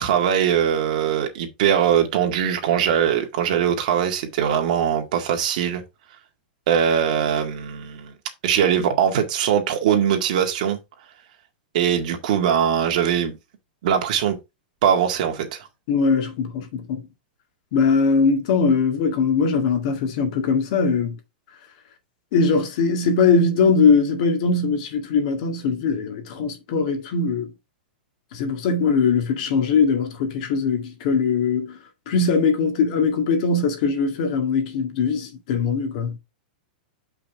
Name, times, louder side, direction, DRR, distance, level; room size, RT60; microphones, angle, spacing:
voice 1, 0.0-5.8 6.7-8.1 8.4-10.8 11.7-13.3 13.8-14.4 14.8-15.7, right 9 dB, 55° right, 2.0 m, -21 dB
voice 2, 15.9-17.0 17.7-21.2 22.3-27.5 28.3-31.8 32.1-36.2, left 5 dB, 45° left, 2.0 m, -21 dB
7.2 x 5.7 x 3.5 m
supercardioid pair, 165°, 5 cm